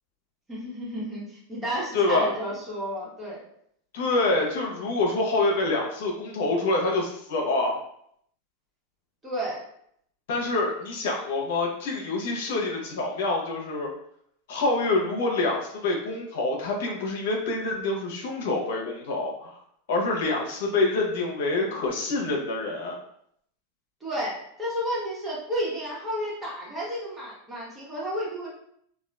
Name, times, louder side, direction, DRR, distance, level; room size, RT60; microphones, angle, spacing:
voice 1, 0.5-3.4 9.2-9.6 24.0-28.5, equal, 15° right, -6 dB, 1.2 m, -32 dB
voice 2, 1.9-2.3 3.9-7.7 10.3-13.9 14.5-19.6 19.9-22.9, left 2 dB, 75° left, 0 dB, 0.8 m, -26 dB
3.6 x 2.3 x 2.3 m, 0.70 s
supercardioid pair, 130°, 0 cm